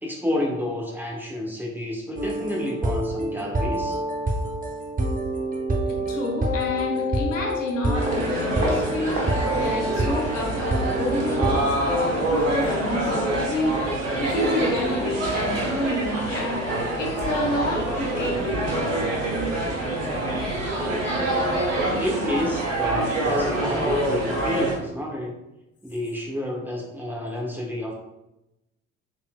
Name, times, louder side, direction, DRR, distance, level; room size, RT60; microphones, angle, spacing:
voice 1, 0.0-4.0 21.9-25.4 25.8-27.9, left 1 dB, 5° right, -2 dB, 1.1 m, -29 dB
sound 1, 2.2-11.6, right 1 dB, 20° right, 0.8 m, -27 dB
voice 2, 6.1-13.8 14.2-16.6 17.0-18.7 20.1-20.2, left 1 dB, 80° left, -1 dB, 0.9 m, -29 dB
sound 2, 7.9-24.7, right 1 dB, 80° right, 1.0 m, -26 dB
4.4 x 3.6 x 2.2 m, 0.91 s
figure-of-eight pair, 55°, 38 cm